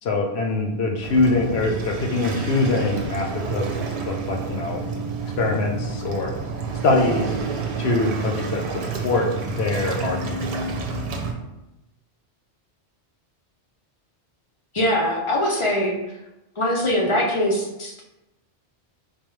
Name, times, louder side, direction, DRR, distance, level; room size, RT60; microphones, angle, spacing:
voice 1, 0.0-3.6 4.1-4.8 5.2-6.3 6.8-7.3 7.8-10.4, left 2 dB, 65° left, 1 dB, 0.9 m, -23 dB
Waves surf, 1.0-11.3, right 4 dB, 70° right, 0.9 m, -29 dB
voice 2, 14.7-15.9 16.6-18.0, left 1 dB, 40° left, -1 dB, 0.4 m, -22 dB
4.6 x 2.2 x 3.1 m, 0.96 s
omnidirectional pair, 1.2 m